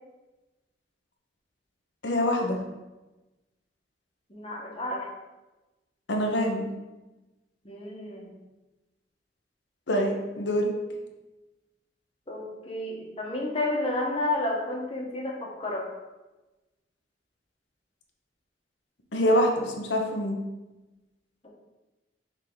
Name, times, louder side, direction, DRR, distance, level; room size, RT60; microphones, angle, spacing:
voice 1, 2.0-2.6 6.1-6.7 9.9-10.7 19.1-20.4, equal, 80° left, 2 dB, 1.0 m, -25 dB
voice 2, 4.3-5.1 7.6-8.3 12.3-15.9, left 1 dB, 35° left, -2 dB, 1.3 m, -31 dB
7.2 x 3.7 x 4.0 m, 1.1 s
head